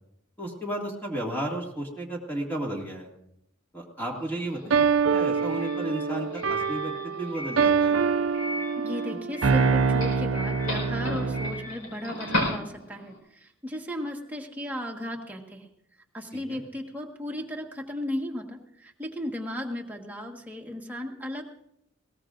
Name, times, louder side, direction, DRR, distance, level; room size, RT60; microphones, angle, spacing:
voice 1, 0.4-3.1 3.7-8.0 16.5-16.6, right 1 dB, 10° left, 0 dB, 2.1 m, -33 dB
Doorbell, 4.1-13.2, left 1 dB, 80° left, 4.8 m, -36 dB
sound 1, 4.7-11.7, right 5 dB, 70° right, 0.6 m, -25 dB
voice 2, 8.8-15.7 16.1-21.4, left 1 dB, 10° right, 0 dB, 1.5 m, -35 dB
20.5 x 18.0 x 2.6 m, 0.78 s
head